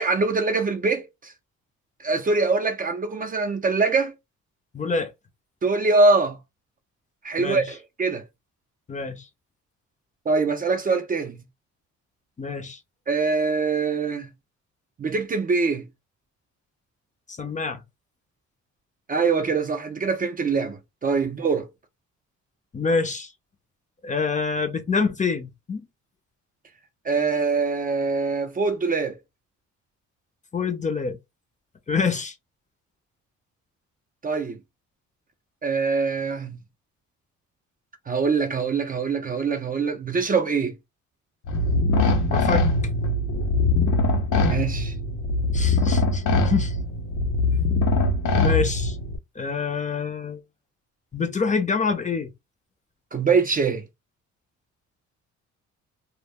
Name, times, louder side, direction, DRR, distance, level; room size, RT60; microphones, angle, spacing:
voice 1, 0.0-1.3 2.0-4.1 5.6-6.4 7.2-8.2 10.3-11.4 13.1-14.3 15.0-15.9 19.1-21.7 27.1-29.2 34.2-34.6 35.6-36.6 38.1-40.7 44.4-44.9 53.1-53.8, right 4 dB, 30° right, 0.4 m, -23 dB
voice 2, 4.7-5.1 7.4-7.7 8.9-9.3 12.4-12.8 17.3-17.8 22.7-23.3 24.0-25.9 30.5-31.2 31.9-32.3 42.3-42.7 45.5-46.8 48.4-49.0 49.4-50.4 51.1-52.3, left 5 dB, 25° left, 0.5 m, -26 dB
sound 1, 41.5-49.2, left 2 dB, 90° left, 0.7 m, -22 dB
2.1 x 2.0 x 3.4 m
cardioid pair, 90°, 30 cm